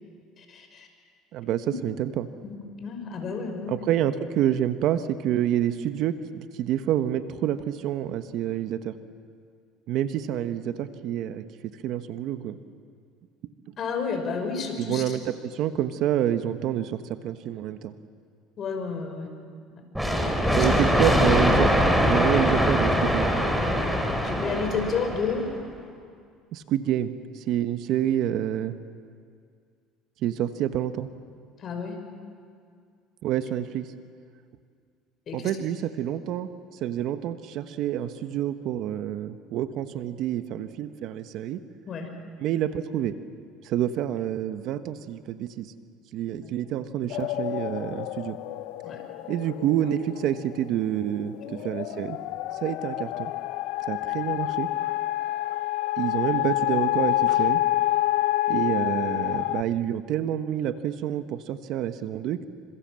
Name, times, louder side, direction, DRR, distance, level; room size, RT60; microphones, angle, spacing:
voice 1, 0.4-0.9 1.6-1.7 2.4-3.7 13.8-15.0 18.6-19.3 19.7-19.8 20.5-20.7 24.2-25.5 31.6-32.0 35.3-35.5 41.9-42.1 46.4-46.5 48.8-49.0, left 5 dB, 40° left, 4 dB, 5.5 m, -31 dB
voice 2, 1.3-2.3 3.7-8.9 9.9-11.4 11.8-12.6 14.8-17.9 20.6-23.3 26.5-28.7 30.2-31.1 33.2-33.9 35.3-36.5 36.8-41.6 42.4-43.1 43.6-45.7 46.1-48.4 49.3-52.2 52.6-53.3 53.9-54.7 56.0-57.6 58.5-62.4, right 11 dB, 60° right, 10 dB, 1.2 m, -28 dB
sound 1, 19.9-25.5, equal, ahead, 3.9 m, -22 dB
sound 2, 47.1-50.9 51.3-59.6, left 14 dB, 75° left, 0.7 m, -28 dB
27.5 x 26.0 x 7.7 m, 2.2 s
supercardioid pair, 115°, 0 cm